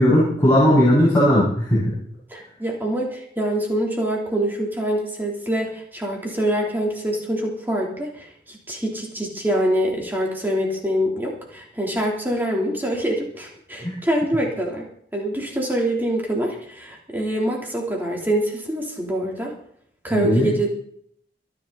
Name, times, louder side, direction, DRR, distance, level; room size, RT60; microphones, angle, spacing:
voice 1, 0.0-1.9 13.8-13.9 20.1-20.5, equal, 15° left, -9 dB, 6.6 m, -17 dB
voice 2, 2.3-14.9 15.1-19.5 20.0-20.7, right 1 dB, 10° right, -2 dB, 3.4 m, -25 dB
25.5 x 9.6 x 4.1 m, 0.63 s
head